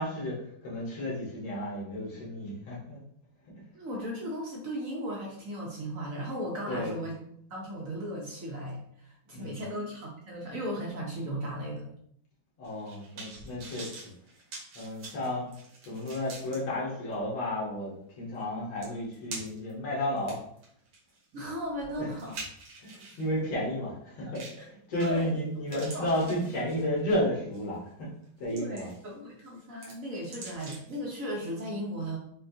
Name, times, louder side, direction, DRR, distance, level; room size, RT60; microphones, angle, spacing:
voice 1, 0.0-3.0 6.7-6.9 9.3-9.7 12.6-14.0 14.8-15.5 15.9-20.4 22.0-22.1 22.8-28.1 28.4-28.9, left 1 dB, 80° left, -5 dB, 1.9 m, -32 dB
voice 2, 3.7-7.2 7.5-11.9 21.3-22.4 24.6-24.7 24.9-25.4 25.7-26.4 28.5-32.2, equal, 60° right, -2 dB, 0.9 m, -36 dB
sound 1, 12.6-16.6 17.1-17.2 18.4-18.5 18.8-19.7 20.2-23.3 24.4-24.7 25.0-25.4 25.7-27.0 27.5-27.8 28.2-29.1 29.4-31.0 31.3-31.4, right 3 dB, 85° right, 2.1 m, -45 dB
6.0 x 2.3 x 2.7 m, 0.67 s
omnidirectional pair, 2.2 m